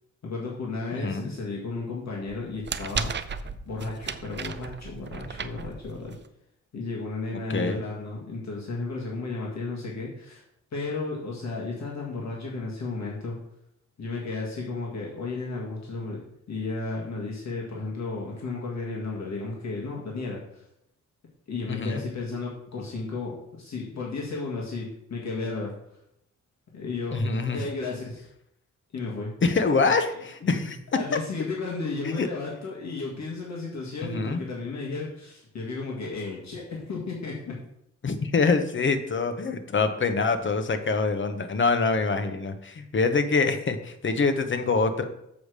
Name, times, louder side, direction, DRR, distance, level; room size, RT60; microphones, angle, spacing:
voice 1, 0.2-3.1 3.7-6.2 6.7-10.4 10.7-13.4 14.0-16.2 16.5-20.6 21.5-25.7 26.7-28.3 28.9-29.3 30.4-37.6, left 3 dB, 60° left, -3 dB, 1.8 m, -33 dB
voice 2, 0.9-1.3 7.5-7.8 21.7-22.0 27.1-27.6 29.4-30.8 32.0-32.3 34.0-34.4 38.0-45.0, left 4 dB, 40° left, 8 dB, 0.9 m, -25 dB
sound 1, 2.3-6.3, right 6 dB, 35° right, 0.5 m, -35 dB
7.0 x 4.9 x 6.5 m, 0.77 s
wide cardioid pair, 140°, 31 cm